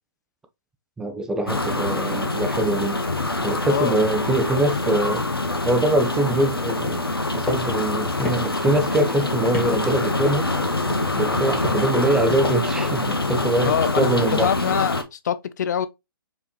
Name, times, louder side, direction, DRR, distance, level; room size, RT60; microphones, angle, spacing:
voice 1, 1.0-3.0 3.4-5.2 5.6-7.0 7.3-10.5 11.1-14.5, right 1 dB, 5° right, 0.4 m, -23 dB
sound 1, 1.5-15.0, left 2 dB, 90° left, 0.8 m, -25 dB
voice 2, 3.7-4.0 13.6-15.9, left 9 dB, 50° left, 0.4 m, -24 dB
sound 2, 7.5-7.6 7.9-8.0 8.2-8.7 9.0-9.7 10.2-10.6 10.9-11.1 11.6-12.5, left 2 dB, 20° left, 1.8 m, -28 dB
4.8 x 3.0 x 2.8 m
figure-of-eight pair, 130°, 12 cm